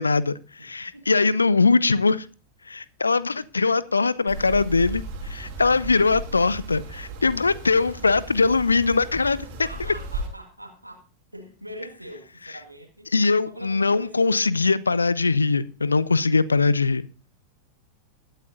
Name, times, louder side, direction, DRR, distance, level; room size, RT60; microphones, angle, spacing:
voice 1, 0.0-2.3 2.7-9.5 13.1-17.1, left 4 dB, 80° left, 0.5 m, -21 dB
voice 2, 0.6-1.1 9.6-11.0 11.3-13.1 13.4-14.5, equal, 85° right, 1.8 m, -42 dB
sound 1, 4.3-10.3, right 2 dB, 45° right, 2.9 m, -36 dB
20.5 x 8.2 x 2.6 m
figure-of-eight pair, 90°, 0 cm